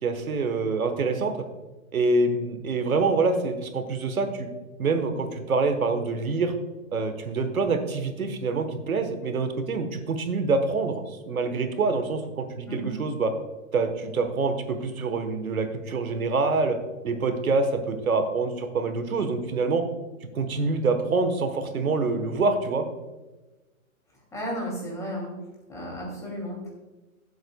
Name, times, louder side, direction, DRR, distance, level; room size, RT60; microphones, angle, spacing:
voice 1, 0.0-1.4 1.9-4.5 4.8-6.5 6.9-13.3 13.7-16.8 17.0-19.8 20.3-22.9, right 3 dB, 90° right, 8 dB, 1.3 m, -26 dB
voice 2, 24.3-25.3 25.7-26.7, equal, 5° left, -3 dB, 2.7 m, -33 dB
14.0 x 7.9 x 2.3 m, 1.1 s
hypercardioid pair, 145°, 41 cm